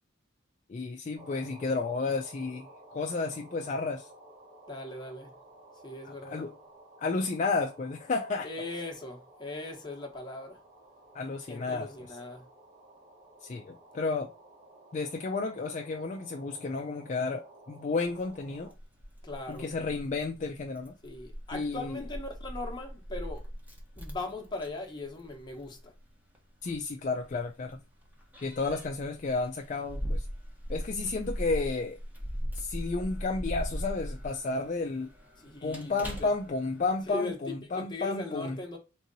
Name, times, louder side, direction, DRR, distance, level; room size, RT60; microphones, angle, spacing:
voice 1, 0.7-4.1 6.2-6.5 7.0-8.5 11.1-11.9 13.4-14.3 14.9-18.7 19.5-20.9 21.5-22.0 26.6-27.8 28.4-30.3 30.7-32.0 32.5-35.1 35.6-38.6, left 3 dB, 35° left, 0.3 m, -32 dB
sound 1, 1.1-18.7, right 1 dB, 30° right, 1.5 m, -54 dB
voice 2, 4.7-5.4 5.8-6.5 8.4-10.6 11.5-12.5 19.2-19.7 21.0-23.5 24.0-25.9 35.4-36.3 37.1-38.8, left 2 dB, 20° left, 0.9 m, -39 dB
Keys jangling, 18.1-37.1, equal, 10° right, 0.9 m, -40 dB
3.7 x 2.8 x 2.6 m
head